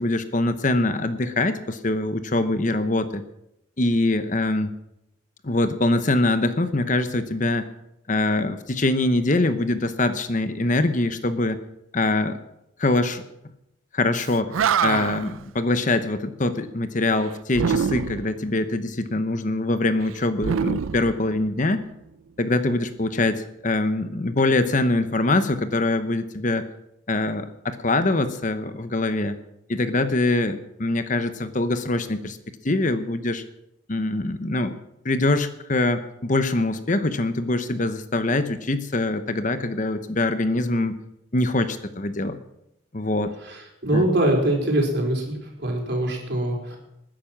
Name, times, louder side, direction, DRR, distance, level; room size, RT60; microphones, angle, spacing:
voice 1, 0.0-3.2 3.8-4.7 5.4-7.7 8.1-11.6 11.9-12.4 12.8-13.2 13.9-14.5 14.8-21.8 22.4-26.7 27.1-29.4 29.7-32.4 32.6-33.4 33.9-34.7 35.0-41.0 41.3-42.4 42.9-43.3 43.9-44.1, left 2 dB, 35° left, 10 dB, 0.9 m, -23 dB
Animal, 14.2-14.3 14.5-15.4 17.5-18.4 20.4-21.7, right 7 dB, 80° right, 0.4 m, -25 dB
voice 2, 43.4-46.8, right 1 dB, 55° right, 0 dB, 4.3 m, -23 dB
20.5 x 10.0 x 6.0 m, 0.83 s
head